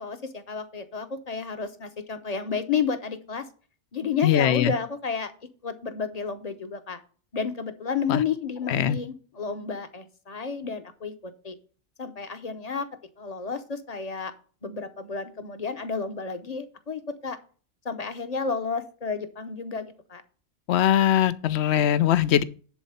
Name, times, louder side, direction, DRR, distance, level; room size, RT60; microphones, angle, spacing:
voice 1, 0.0-3.5 3.9-5.3 5.6-7.0 7.3-11.5 12.0-12.9 13.2-14.3 14.6-17.4 17.8-20.2, left 5 dB, 35° left, 0.9 m, -31 dB
voice 2, 4.2-4.7 8.1-8.2 8.7-9.0 20.7-22.4, left 10 dB, 70° left, 0.8 m, -21 dB
10.5 x 4.1 x 5.6 m
omnidirectional pair, 1.2 m